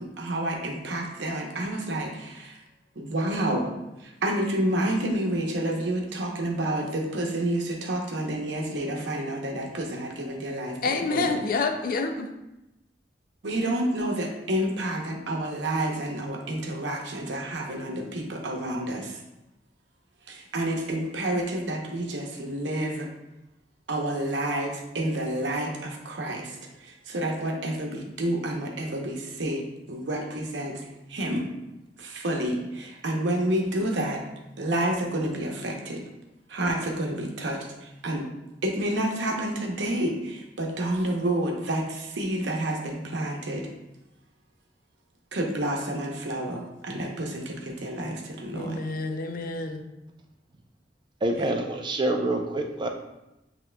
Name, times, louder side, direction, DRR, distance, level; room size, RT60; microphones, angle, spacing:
voice 1, 0.0-2.6 3.0-3.7 4.0-11.4 13.4-19.2 20.3-23.1 23.9-31.5 32.0-34.2 34.6-36.0 36.5-38.3 38.6-43.7 45.3-48.8 51.3-51.5, right 1 dB, 85° right, 1 dB, 0.8 m, -29 dB
voice 2, 10.8-12.3 48.6-49.8, left 3 dB, 55° left, 6 dB, 0.4 m, -28 dB
voice 3, 51.2-52.9, right 1 dB, 25° right, 3 dB, 0.4 m, -26 dB
7.6 x 2.9 x 2.2 m, 0.94 s
head